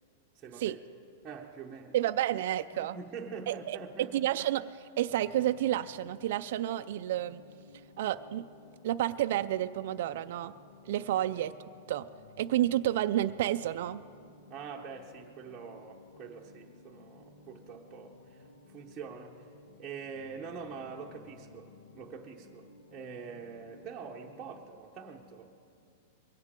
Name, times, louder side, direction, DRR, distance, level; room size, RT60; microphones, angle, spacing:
voice 1, 0.3-0.8 1.2-2.0 2.7-4.1 11.2-11.3 14.5-19.5 19.8-25.5, right 5 dB, 15° right, -3 dB, 0.9 m, -45 dB
voice 2, 1.9-3.0 3.5-7.4 8.0-8.5 8.8-10.5 10.9-12.1 12.4-14.0, right 13 dB, 60° right, 10 dB, 0.4 m, -30 dB
sound 1, 5.1-24.6, left 3 dB, 80° left, 1.5 m, -56 dB
22.0 x 17.0 x 3.7 m, 2.4 s
supercardioid pair, 165°, 0 cm